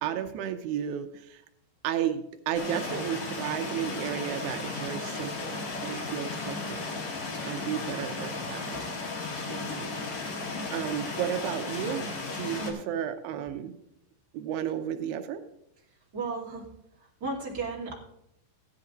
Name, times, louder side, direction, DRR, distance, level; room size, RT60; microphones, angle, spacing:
voice 1, 0.0-1.4 1.8-6.8 7.5-8.8 9.5-10.0 10.7-13.7 14.3-15.4, right 9 dB, 90° right, 8 dB, 2.7 m, -33 dB
sound 1, 2.5-12.7, left 3 dB, 50° left, 2.8 m, -35 dB
voice 2, 12.5-13.0 16.1-16.7 17.0-18.0, right 3 dB, 25° right, -4 dB, 2.5 m, -36 dB
15.5 x 11.0 x 2.6 m, 0.78 s
omnidirectional pair, 4.7 m